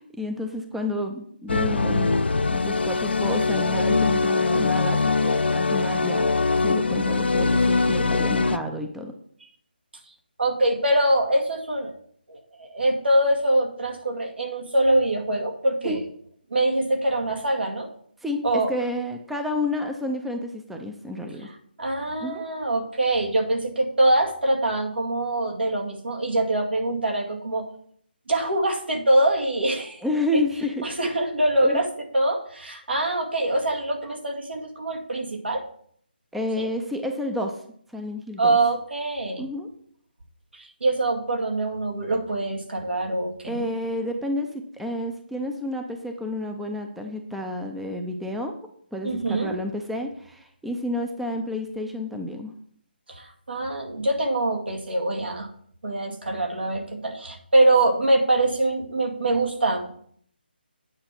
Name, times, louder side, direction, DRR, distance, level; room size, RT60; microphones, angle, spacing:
voice 1, 0.0-2.2 2.5-6.3 6.6-9.1 15.8-16.0 18.2-21.5 22.2-22.4 30.0-31.2 31.6-31.8 36.3-37.6 37.9-38.6 39.4-39.7 43.4-48.5 48.9-52.5, left 1 dB, ahead, 4 dB, 0.4 m, -30 dB
sound 1, 1.5-8.6, left 3 dB, 85° left, 0.5 m, -22 dB
voice 2, 10.4-11.9 12.3-16.0 16.5-17.9 18.4-18.7 21.8-27.7 28.3-30.0 30.3-30.4 30.8-31.9 32.1-35.6 36.6-36.7 38.4-39.5 40.5-43.6 49.0-49.5 53.1-55.5 55.8-59.9, right 1 dB, 80° right, 1 dB, 2.2 m, -24 dB
8.8 x 5.4 x 5.9 m, 0.62 s
figure-of-eight pair, 160°, 6 cm